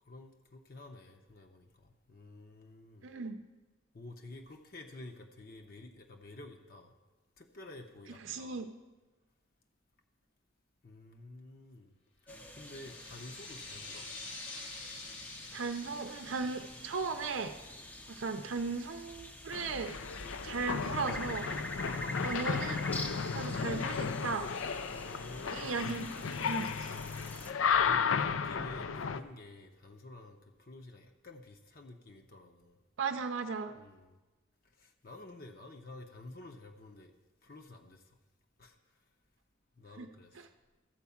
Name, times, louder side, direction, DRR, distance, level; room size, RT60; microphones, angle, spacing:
voice 1, 0.0-3.1 3.9-6.9 7.4-8.6 10.8-11.9 12.2-14.1 20.4-20.6 21.7-22.4 24.9-25.8 27.8-32.8 33.7-34.2 34.6-37.1 37.4-38.2 38.6-39.0 39.8-40.5, left 2 dB, 45° left, 3 dB, 0.7 m, -50 dB
voice 2, 3.0-3.4 8.2-8.7 15.5-17.5 18.1-20.0 20.4-21.5 22.2-22.8 23.3-24.5 25.5-26.9 33.0-33.7 40.0-40.1, right 4 dB, 80° right, 7 dB, 0.6 m, -36 dB
sound 1, 12.3-27.5, left 1 dB, 10° left, 0.5 m, -46 dB
sound 2, 12.5-18.8, left 3 dB, 70° left, 1.7 m, -48 dB
sound 3, 19.5-29.2, left 6 dB, 90° left, 0.5 m, -34 dB
13.0 x 4.6 x 7.1 m, 1.2 s
head